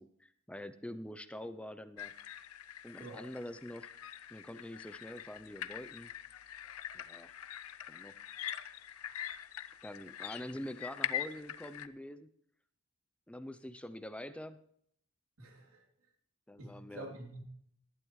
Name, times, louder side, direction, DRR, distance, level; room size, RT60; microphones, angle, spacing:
voice 1, 0.0-2.1 2.8-3.9 4.3-6.1 6.9-7.3 7.9-8.2 9.8-12.3 13.3-14.6 16.5-17.1, left 1 dB, 5° left, 12 dB, 0.4 m, -45 dB
sound 1, 2.0-11.9, left 11 dB, 80° left, 0.6 m, -43 dB
voice 2, 3.0-3.3 15.4-15.8 16.6-17.4, right 1 dB, 85° right, 2 dB, 3.0 m, -47 dB
18.5 x 12.5 x 3.1 m, 0.66 s
head